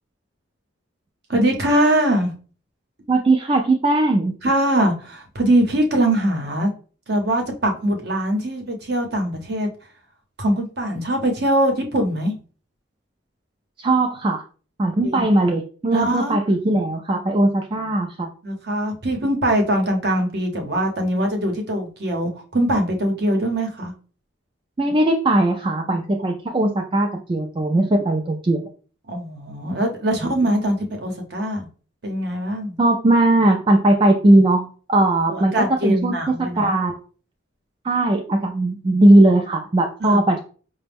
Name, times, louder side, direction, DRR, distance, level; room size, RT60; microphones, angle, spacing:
voice 1, 1.3-2.3 4.4-6.7 7.1-9.7 10.4-12.3 15.0-15.2 15.9-16.4 18.4-23.9 29.1-31.7 32.0-32.7 35.3-36.8 40.0-40.2, right 1 dB, 55° right, 3 dB, 0.8 m, -22 dB
voice 2, 3.1-4.4 13.8-14.4 14.8-18.3 24.8-28.6 32.8-35.5 35.8-37.0 37.8-40.4, right 1 dB, 25° right, 2 dB, 0.3 m, -18 dB
5.0 x 2.1 x 3.4 m, 0.39 s
head